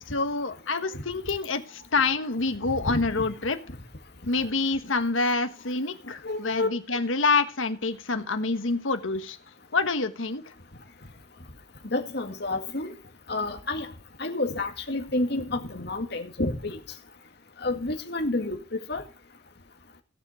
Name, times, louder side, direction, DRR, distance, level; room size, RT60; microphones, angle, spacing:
voice 1, 0.1-3.6 4.3-9.4 9.7-10.4, left 3 dB, 90° left, 1.3 m, -27 dB
voice 2, 6.2-6.7 11.8-12.9 13.3-13.9 14.2-16.8 17.6-18.6 18.9-19.0, left 2 dB, 55° left, 2.0 m, -29 dB
17.0 x 7.2 x 5.0 m
head